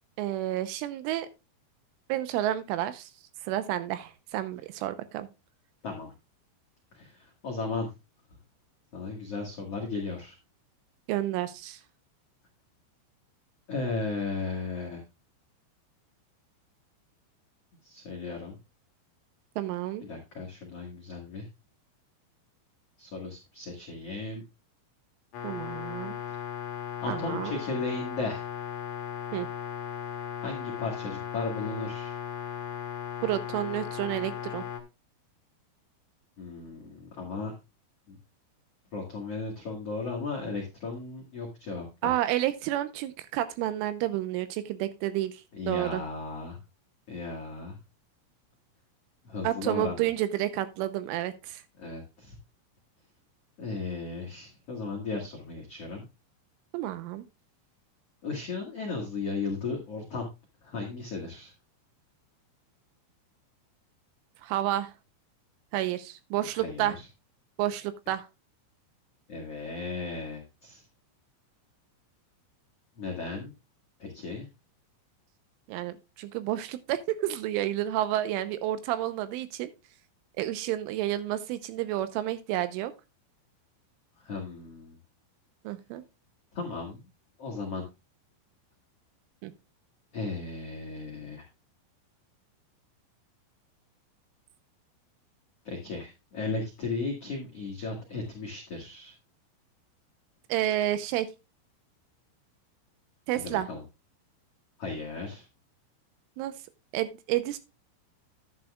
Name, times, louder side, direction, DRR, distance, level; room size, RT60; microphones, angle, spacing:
voice 1, 0.2-1.3 2.1-3.1 3.4-5.3 11.1-11.8 19.6-20.1 25.4-26.2 27.1-27.6 29.3-29.5 33.2-34.6 42.0-45.4 45.7-46.0 49.4-51.6 56.7-57.2 64.4-64.9 65.7-66.9 67.6-68.2 75.7-79.7 80.4-82.9 85.6-86.0 89.4-89.5 100.5-101.3 103.3-103.7 106.4-106.5 106.9-107.6, right 13 dB, 85° right, 12 dB, 3.2 m, -30 dB
voice 2, 6.9-7.9 8.9-10.3 13.7-15.0 17.8-18.6 20.0-21.4 23.0-24.4 27.0-28.4 30.4-32.2 36.4-37.5 38.1-38.2 38.9-42.1 45.5-46.6 47.1-47.8 49.2-50.1 51.8-52.3 53.6-56.0 58.2-60.3 60.6-61.5 66.5-67.1 69.3-70.8 73.0-73.5 74.0-74.5 84.2-85.0 86.5-87.0 87.4-87.8 90.1-91.4 95.6-99.1 103.3-103.8 104.8-105.5, left 3 dB, 85° left, -1 dB, 1.3 m, -35 dB
sound 1, 25.3-34.8, left 9 dB, 70° left, 2.1 m, -37 dB
10.5 x 10.0 x 2.3 m, 0.26 s
omnidirectional pair, 5.7 m